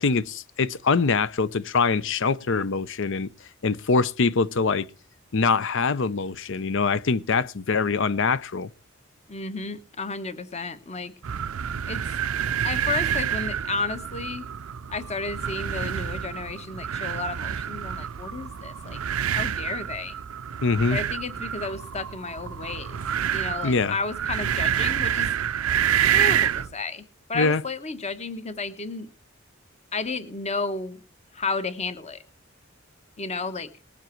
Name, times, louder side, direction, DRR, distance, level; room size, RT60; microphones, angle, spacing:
voice 1, 0.0-3.3 3.6-4.9 5.3-8.7 20.6-21.0 23.6-24.0 27.3-27.6, left 4 dB, 65° left, 0.7 m, -23 dB
voice 2, 9.3-11.1 11.9-12.1 12.6-14.5 14.9-19.0 19.3-20.2 20.9-23.0 23.3-25.3 25.9-27.0 27.3-29.1 29.9-31.0 31.3-32.2 33.2-33.7, left 3 dB, 30° left, 1.1 m, -32 dB
sound 1, 11.2-26.7, right 9 dB, 85° right, 0.5 m, -28 dB
20.0 x 7.4 x 4.5 m
head